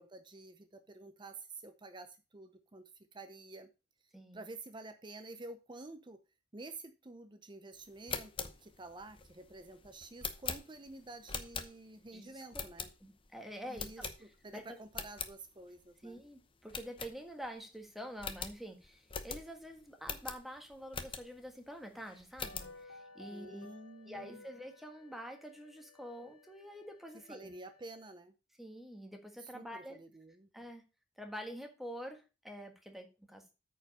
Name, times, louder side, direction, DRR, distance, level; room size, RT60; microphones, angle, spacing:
voice 1, 0.0-3.7 4.3-6.2 6.5-12.9 13.6-16.2 23.3-24.4 27.3-28.3 29.4-30.5, right 2 dB, 25° right, 10 dB, 0.7 m, -50 dB
sound 1, 7.9-12.1 12.5-13.3 13.7-14.5 14.8-15.3 15.8-15.9 16.1-16.3 16.7-17.6 17.8-17.9 18.2-21.5 21.9-22.8, left 6 dB, 25° left, 0.8 m, -43 dB
voice 2, 12.1-12.6 13.0-14.1 14.5-14.8 16.0-23.7 24.0-27.5 28.6-30.0 30.5-30.8 31.2-33.4, equal, ahead, 3 dB, 1.5 m, -47 dB
sound 2, 22.4-26.7 27.0-27.1, left 2 dB, 90° left, 1.1 m, -56 dB
sound 3, 23.0-28.1, left 12 dB, 45° left, 2.4 m, -67 dB
8.9 x 5.1 x 5.4 m, 0.29 s
head